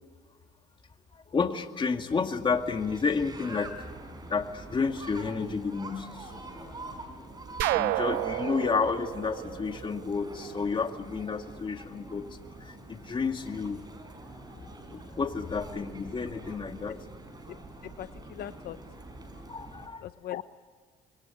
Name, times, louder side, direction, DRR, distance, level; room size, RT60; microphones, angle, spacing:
voice 1, 1.1-3.9 4.3-6.3 7.7-13.9 14.9-17.0 19.4-20.0, left 5 dB, 30° left, 6 dB, 2.2 m, -31 dB
sound 1, 2.5-19.9, right 2 dB, 25° right, 5.3 m, -45 dB
sound 2, 7.6-10.4, right 16 dB, 85° right, 0.7 m, -30 dB
voice 2, 18.0-18.8 20.0-20.4, left 12 dB, 65° left, 11 dB, 0.8 m, -39 dB
25.5 x 22.5 x 9.9 m, 1.5 s
cardioid pair, 110°, 17 cm